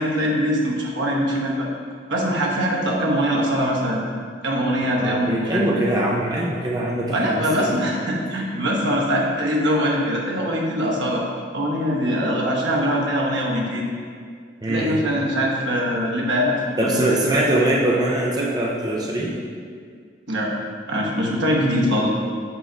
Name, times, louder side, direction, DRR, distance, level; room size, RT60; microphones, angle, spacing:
voice 1, 0.0-1.7 2.1-4.0 4.4-6.0 7.1-11.2 11.5-13.9 14.7-17.1 20.3-20.5 20.9-22.1, equal, 85° right, -2 dB, 1.1 m, -22 dB
voice 2, 5.0-7.8 14.6-15.0 16.8-19.4, right 1 dB, 20° right, -2 dB, 0.5 m, -22 dB
6.0 x 4.5 x 3.9 m, 2.1 s
head